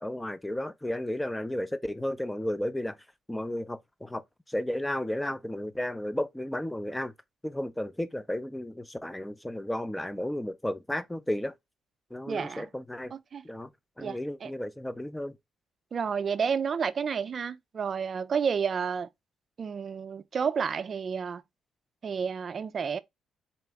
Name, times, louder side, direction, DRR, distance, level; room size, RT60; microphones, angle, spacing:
voice 1, 0.0-3.0 3.3-4.2 4.5-7.1 7.4-11.5 12.1-13.1 13.4-13.7 14.0-15.3, left 1 dB, 10° left, 0.5 m, -33 dB
voice 2, 12.3-12.7 13.1-13.5 14.0-14.5 15.9-19.1 19.6-21.4 22.0-23.0, right 6 dB, 45° right, 0.4 m, -31 dB
4.1 x 2.8 x 3.4 m
cardioid pair, 90°, 0 cm